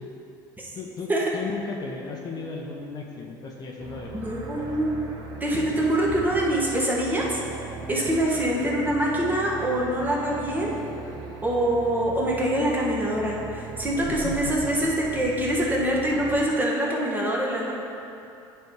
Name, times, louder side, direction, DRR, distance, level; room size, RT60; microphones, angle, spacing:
voice 1, 0.7-4.8 7.8-7.9 14.1-14.7 16.1-16.2, left 4 dB, 40° left, 0 dB, 0.8 m, -36 dB
sound 1, 3.8-16.5, right 4 dB, 45° right, 1.0 m, -39 dB
voice 2, 4.1-4.9 5.4-7.4 7.9-10.7 11.4-17.7, right 1 dB, 15° right, -4 dB, 1.3 m, -24 dB
9.3 x 3.4 x 4.6 m, 2.7 s
supercardioid pair, 105°, 11 cm